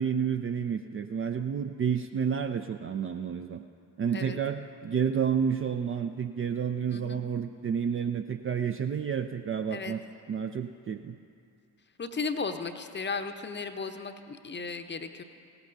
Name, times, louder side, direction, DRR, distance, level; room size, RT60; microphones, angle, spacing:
voice 1, 0.0-3.6 4.0-10.0 10.3-11.2, right 7 dB, 30° right, 7 dB, 0.5 m, -30 dB
voice 2, 12.0-15.2, left 4 dB, 25° left, 8 dB, 0.8 m, -35 dB
17.5 x 14.5 x 2.6 m, 2.4 s
figure-of-eight pair, 45°, 48 cm